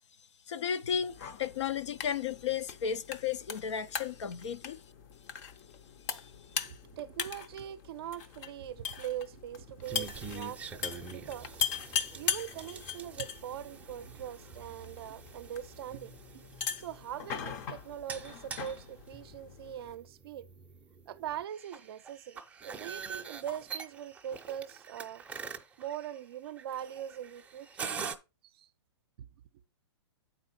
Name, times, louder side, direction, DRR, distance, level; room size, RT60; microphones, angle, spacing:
voice 1, 0.5-4.8, left 7 dB, 75° left, 0.6 m, -34 dB
sound 1, 1.1-20.0, left 7 dB, 40° left, 0.7 m, -40 dB
voice 2, 6.6-11.5 12.2-16.4 16.8-20.5 21.1-25.2 25.8-28.0 28.5-28.7 29.2-29.3, right 10 dB, 55° right, 0.5 m, -42 dB
sound 2, 9.8-28.2, right 5 dB, 10° right, 0.6 m, -45 dB
8.7 x 4.3 x 4.2 m
hypercardioid pair, 140°, 15 cm